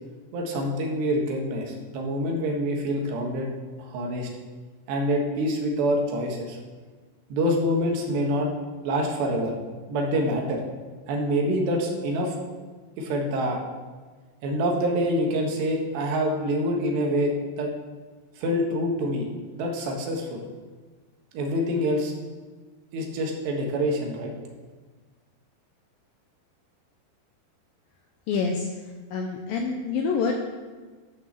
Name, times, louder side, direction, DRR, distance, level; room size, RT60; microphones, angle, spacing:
voice 1, 0.3-3.5 3.8-4.3 4.9-6.6 7.3-8.5 8.8-9.5 9.9-10.6 11.1-12.4 13.0-13.6 14.4-17.7 18.4-19.3 19.5-20.5 21.3-22.1 22.9-24.3, equal, 75° right, 1 dB, 3.7 m, -26 dB
voice 2, 28.3-28.7 29.1-30.4, left 5 dB, 75° left, 2 dB, 2.1 m, -26 dB
11.0 x 6.5 x 7.4 m, 1.4 s
omnidirectional pair, 5.0 m